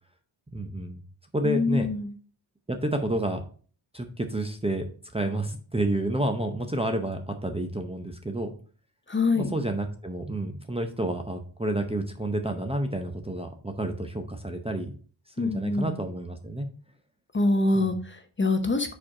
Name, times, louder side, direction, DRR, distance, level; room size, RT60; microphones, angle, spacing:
voice 1, 0.5-1.0 1.3-1.9 2.7-3.5 3.9-4.8 5.1-8.5 9.3-14.9 15.4-16.7 17.7-17.9, right 1 dB, 10° right, 4 dB, 0.6 m, -30 dB
voice 2, 1.4-2.1 9.1-9.5 15.4-15.9 17.3-18.9, left 3 dB, 25° left, 7 dB, 0.7 m, -25 dB
5.0 x 4.4 x 4.7 m, 0.42 s
wide cardioid pair, 110°, 49 cm